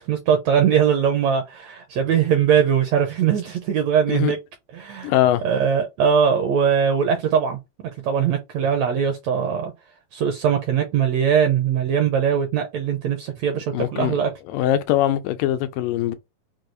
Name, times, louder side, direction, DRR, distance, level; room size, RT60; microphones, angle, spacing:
voice 1, 0.1-4.4 4.7-5.1 5.4-7.6 8.0-9.7 10.1-14.3, right 7 dB, 75° right, 1.6 m, -21 dB
voice 2, 5.0-5.4 13.7-14.2 14.5-16.2, left 12 dB, 85° left, 2.2 m, -21 dB
6.1 x 2.4 x 2.6 m
omnidirectional pair, 3.8 m